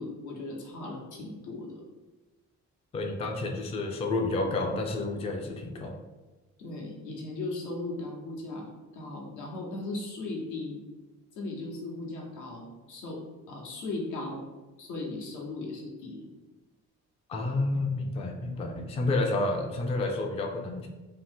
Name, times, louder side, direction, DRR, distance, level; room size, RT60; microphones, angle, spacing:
voice 1, 0.0-1.8 6.6-8.7 8.9-10.8 11.4-13.2 13.5-14.4 14.8-16.2 18.6-18.7, left 2 dB, 80° left, -1 dB, 0.8 m, -37 dB
voice 2, 2.9-6.0 17.3-20.9, left 2 dB, 20° left, 2 dB, 0.3 m, -30 dB
2.8 x 2.0 x 3.3 m, 1.2 s
cardioid pair, 90°, 30 cm